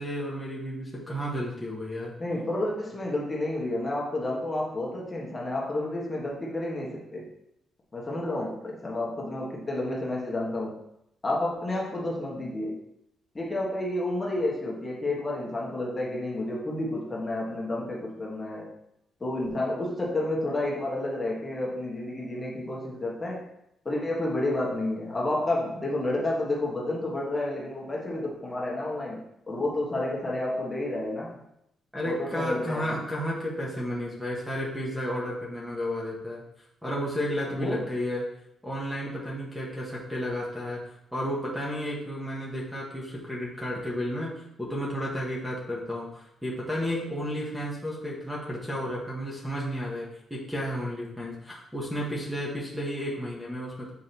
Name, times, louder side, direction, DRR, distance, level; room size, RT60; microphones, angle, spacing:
voice 1, 0.0-2.1 31.9-36.4 36.8-38.2 38.6-40.8 41.1-53.9, equal, 5° right, -4 dB, 1.4 m, -32 dB
voice 2, 2.2-7.2 7.9-10.8 11.2-12.8 13.3-18.7 19.2-23.5 23.8-31.4 32.0-32.9 37.6-37.8, left 1 dB, 20° left, -3 dB, 1.4 m, -30 dB
7.4 x 4.7 x 2.9 m, 0.80 s
cardioid pair, 105°, 0 cm